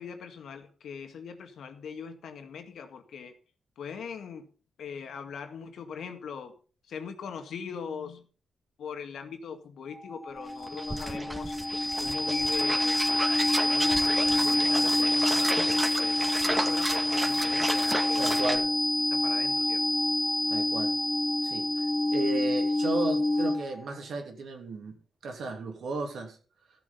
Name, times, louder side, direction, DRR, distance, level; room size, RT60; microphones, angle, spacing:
voice 1, 0.0-3.3 3.8-4.5 4.8-6.6 6.9-8.3 8.8-11.6 12.0-13.0 13.3-18.6 19.1-19.8, left 6 dB, 80° left, 2.0 m, -41 dB
sound 1, 9.9-23.8, left 1 dB, 15° left, 0.8 m, -27 dB
sound 2, 10.4-10.5 10.6-18.6, right 1 dB, 10° right, 2.0 m, -33 dB
voice 2, 18.2-18.7 20.5-20.9 21.4-25.0 25.2-26.4, right 3 dB, 70° right, 2.9 m, -34 dB
14.0 x 7.4 x 5.6 m
cardioid pair, 80°, 0 cm